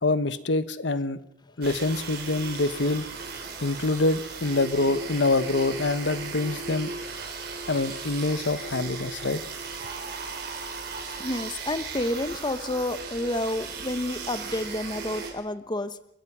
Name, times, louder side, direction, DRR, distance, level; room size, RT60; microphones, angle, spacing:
voice 1, 0.0-1.2 1.6-3.0 3.6-6.9 7.7-9.4, left 2 dB, 85° left, 13 dB, 1.0 m, -25 dB
sound 1, 1.6-15.3, right 4 dB, 60° right, 5.1 m, -37 dB
voice 2, 11.2-16.0, left 1 dB, 25° left, 12 dB, 0.9 m, -30 dB
29.5 x 15.5 x 6.2 m, 0.80 s
head